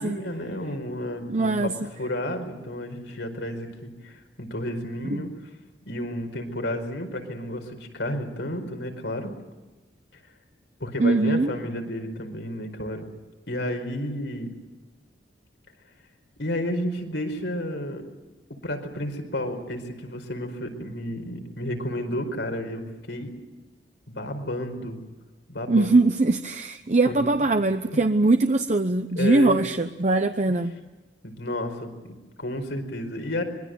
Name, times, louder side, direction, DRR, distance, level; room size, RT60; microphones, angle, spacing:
voice 1, 0.0-1.7 2.0-5.3 5.9-9.3 10.8-13.0 13.5-14.5 16.4-18.0 18.6-23.3 24.1-25.0 25.5-25.9 27.1-27.3 27.9-28.0 29.1-29.6 30.5-30.6 31.2-33.4, left 1 dB, 80° left, 5 dB, 4.8 m, -31 dB
voice 2, 1.3-1.7 5.0-5.2 11.0-11.5 25.7-30.8, right 2 dB, 40° right, 7 dB, 0.8 m, -22 dB
25.0 x 22.0 x 7.9 m, 1.2 s
head